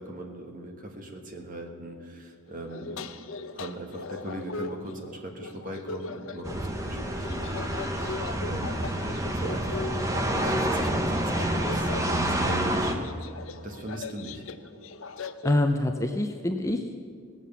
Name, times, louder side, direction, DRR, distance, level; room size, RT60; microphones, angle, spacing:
voice 1, 0.0-3.1 3.5-8.8 9.3-13.1 13.6-14.4, right 1 dB, 35° right, 3 dB, 1.4 m, -40 dB
sound 1, 2.5-15.6, left 4 dB, 60° left, 0.6 m, -40 dB
sound 2, 6.4-12.9, right 1 dB, 15° right, 0.9 m, -28 dB
voice 2, 15.4-17.0, left 1 dB, 15° left, 5 dB, 0.5 m, -26 dB
18.0 x 7.5 x 6.9 m, 2.1 s
head